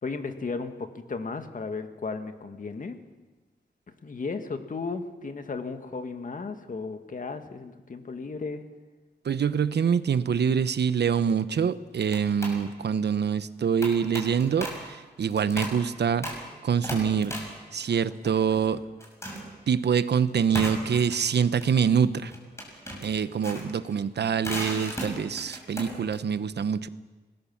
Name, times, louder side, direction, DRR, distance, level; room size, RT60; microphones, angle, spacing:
voice 1, 0.0-3.0 4.0-8.7, left 4 dB, 50° left, 7 dB, 1.9 m, -35 dB
voice 2, 9.2-16.3 16.6-17.3 17.7-18.8 19.7-22.3 23.0-26.9, right 7 dB, 75° right, 14 dB, 0.9 m, -25 dB
sound 1, 11.2-11.5 12.1-12.6 13.8-14.9 15.3-15.8 16.2-16.5 16.8-18.7 19.0-19.5 20.5-26.2, equal, 15° left, 6.5 m, -37 dB
26.5 x 19.5 x 7.3 m, 1.2 s
wide cardioid pair, 105°, 18 cm